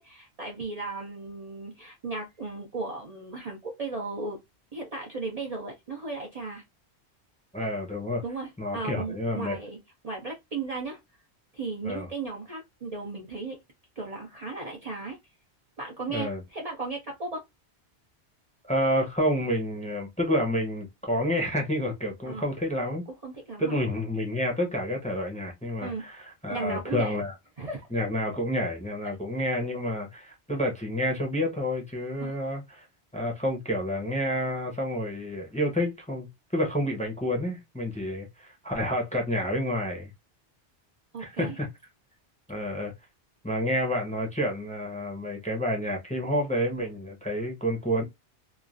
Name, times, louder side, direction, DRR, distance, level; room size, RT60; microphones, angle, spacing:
voice 1, 0.0-4.4 4.7-6.6 8.2-9.8 10.0-11.0 11.5-13.6 14.0-15.2 15.8-17.4 22.3-22.4 23.2-23.8 25.8-26.0 26.5-27.2 27.6-27.9 32.2-32.3 41.1-41.6, right 3 dB, 40° right, 0.6 m, -36 dB
voice 2, 7.5-8.2 8.6-9.6 11.8-12.1 16.1-16.4 18.7-23.0 23.6-27.3 27.9-32.9 33.1-40.1 41.2-41.7 42.5-42.9 43.4-48.0, equal, 5° left, 0.7 m, -29 dB
3.0 x 2.4 x 2.4 m
omnidirectional pair, 1.1 m